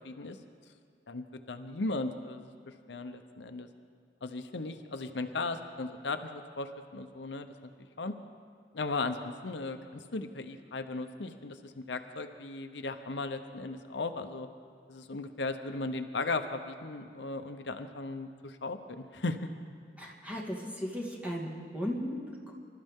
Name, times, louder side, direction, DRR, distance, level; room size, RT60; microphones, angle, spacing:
voice 1, 0.0-0.4 1.1-3.7 4.2-7.5 8.0-8.1 8.7-14.5 14.9-19.4, left 3 dB, 80° left, 7 dB, 0.8 m, -37 dB
voice 2, 20.0-21.5 21.7-22.5, equal, 10° right, -2 dB, 1.9 m, -36 dB
26.0 x 13.0 x 3.7 m, 2.2 s
head